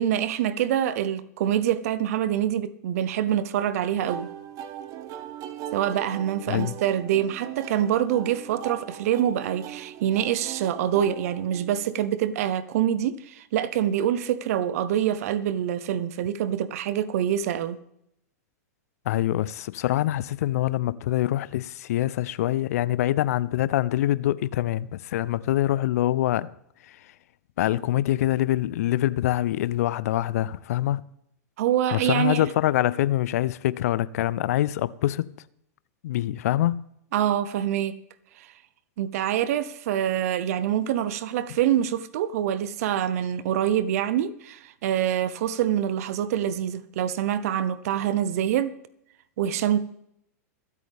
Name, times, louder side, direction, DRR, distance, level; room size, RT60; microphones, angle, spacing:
voice 1, 0.0-4.3 5.7-17.8 31.6-32.5 37.1-38.0 38.4-38.5 39.0-48.7 49.4-49.8, right 10 dB, 60° right, 0.9 m, -25 dB
sound 1, 4.1-12.0, right 10 dB, 40° right, 1.1 m, -40 dB
voice 2, 19.1-26.5 26.8-27.1 27.6-31.0 31.9-35.3 36.0-36.8, left 14 dB, 65° left, 0.5 m, -25 dB
23.0 x 8.5 x 3.5 m
hypercardioid pair, 110°, 9 cm